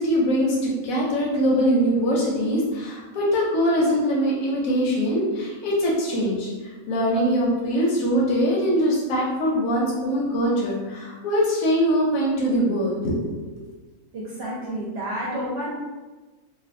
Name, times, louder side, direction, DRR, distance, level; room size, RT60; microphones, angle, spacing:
voice 1, 0.0-6.5 6.9-13.3, equal, 85° left, -4 dB, 1.0 m, -22 dB
voice 2, 14.1-15.7, equal, 60° right, -6 dB, 0.7 m, -30 dB
2.5 x 2.1 x 2.5 m, 1.3 s
omnidirectional pair, 1.4 m